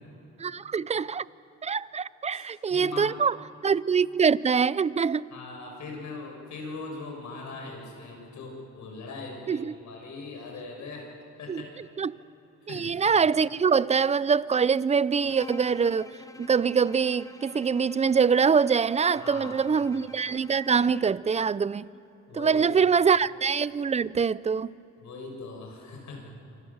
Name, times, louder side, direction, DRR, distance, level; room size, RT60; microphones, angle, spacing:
voice 1, 0.4-1.3 1.6-3.4 3.6-5.2 9.5-9.7 11.5-12.2 12.7-16.1 16.4-21.9 22.3-24.7, right 6 dB, 20° right, 0.5 m, -24 dB
voice 2, 2.7-3.1 5.3-11.1 11.4-11.7 12.6-12.9 19.1-19.8 22.3-22.9 25.0-26.3, left 3 dB, 70° left, 6.8 m, -40 dB
Bowed string instrument, 15.2-21.3, left 2 dB, 10° left, 0.9 m, -46 dB
26.5 x 26.0 x 7.3 m
cardioid pair, 90°, 30 cm